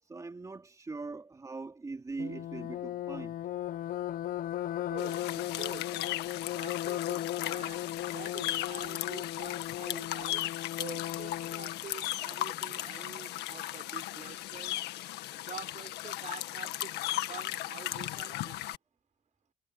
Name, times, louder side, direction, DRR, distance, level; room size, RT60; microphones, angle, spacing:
voice 1, 0.0-3.4, right 3 dB, 20° right, 2.9 m, -41 dB
sound 1, 2.2-11.8, left 12 dB, 60° left, 1.0 m, -37 dB
voice 2, 4.9-6.1 6.5-10.5 10.8-14.7 15.5-16.9 17.3-18.6, right 8 dB, 45° right, 5.8 m, -47 dB
sound 2, 5.0-18.8, left 15 dB, 85° left, 1.7 m, -37 dB
cardioid pair, 110°, 17 cm